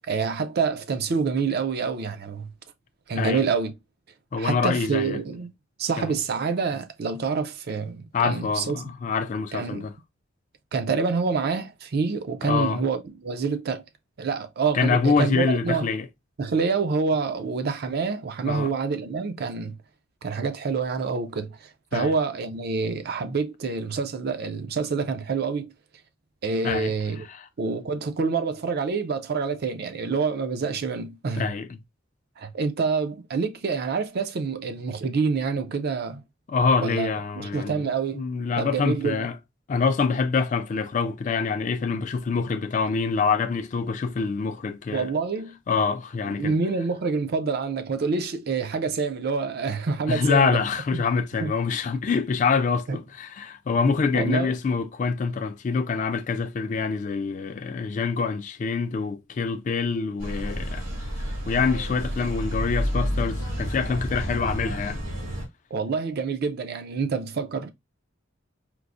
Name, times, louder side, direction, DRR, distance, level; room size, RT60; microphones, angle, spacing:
voice 1, 0.1-2.5 3.1-3.7 4.4-5.5 5.8-8.8 9.5-9.9 10.7-13.8 14.2-15.9 16.4-19.8 20.2-25.7 26.4-27.3 27.6-31.5 32.4-36.2 36.8-38.3 38.6-39.3 44.9-45.6 46.2-50.6 50.9-51.0 51.4-51.5 52.9-53.0 54.1-54.5 65.7-67.7, right 5 dB, 55° right, 0.4 m, -27 dB
voice 2, 4.3-5.2 6.0-6.1 8.1-9.9 12.5-12.9 14.7-16.1 18.5-18.7 21.9-22.1 26.6-26.9 27.3-27.5 31.3-31.8 36.5-37.9 38.1-39.4 39.7-45.1 45.7-46.5 50.1-60.8 61.5-65.0, left 5 dB, 40° left, 0.3 m, -25 dB
sound 1, 60.2-65.5, equal, 80° right, 1.5 m, -30 dB
4.5 x 2.0 x 2.5 m
head